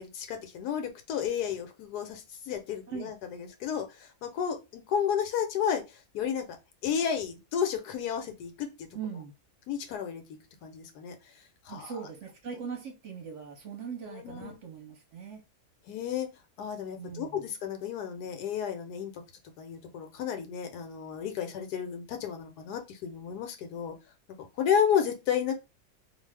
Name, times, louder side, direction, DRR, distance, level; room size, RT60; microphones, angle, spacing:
voice 1, 0.0-6.5 6.8-8.9 9.7-10.2 10.6-11.1 11.6-11.9 14.1-14.6 15.9-16.3 16.6-19.2 19.6-23.9 24.4-25.5, left 8 dB, 85° left, 1.2 m, -32 dB
voice 2, 8.9-9.3 11.7-15.4 17.0-17.4, right 6 dB, 60° right, 0.9 m, -40 dB
2.6 x 2.4 x 3.2 m
omnidirectional pair, 1.7 m